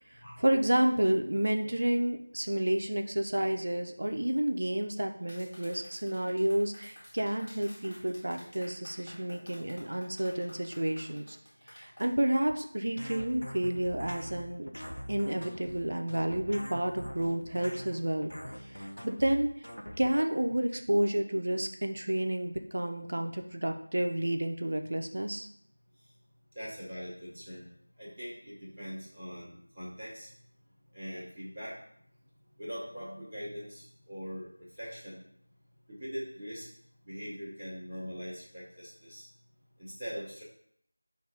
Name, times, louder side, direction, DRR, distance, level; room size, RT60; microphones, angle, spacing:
voice 1, 0.4-11.4 11.7-14.7 15.1-18.3 18.7-19.5 20.0-25.5, right 1 dB, 50° right, 5 dB, 0.4 m, -30 dB
Clapping, 5.3-12.1, equal, 45° left, 1.2 m, -52 dB
sound 1, 13.0-20.1, equal, 80° left, 0.6 m, -43 dB
voice 2, 26.5-27.7 28.0-30.3 30.9-31.7 32.6-35.2 35.9-36.7 37.1-39.2 39.8-40.4, equal, 5° right, -22 dB, 0.9 m, -42 dB
5.1 x 2.4 x 3.3 m, 0.66 s
figure-of-eight pair, 170°, 0 cm